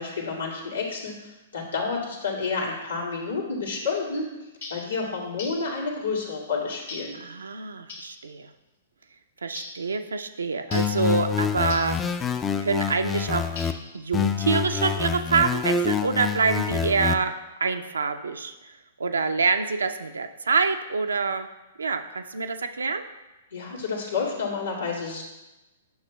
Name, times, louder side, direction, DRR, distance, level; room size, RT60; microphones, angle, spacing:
voice 1, 0.0-4.3 4.7-7.2 23.5-25.2, left 4 dB, 80° left, -4 dB, 2.0 m, -30 dB
sound 1, 4.6-4.9 5.4-5.7 6.9-7.2 7.9-8.2 9.5-9.8 10.7-11.0 11.7-12.0 13.6-14.0, left 3 dB, 60° left, 1.3 m, -39 dB
voice 2, 7.1-8.5 9.4-12.0 12.6-13.5 13.9-17.3 17.6-18.5 19.0-21.5 21.8-23.0, right 4 dB, 75° right, 7 dB, 0.4 m, -26 dB
sound 2, 10.7-13.7 14.1-17.1, left 7 dB, 15° left, 0.3 m, -26 dB
10.0 x 6.0 x 2.2 m, 1.0 s
figure-of-eight pair, 110°, 0 cm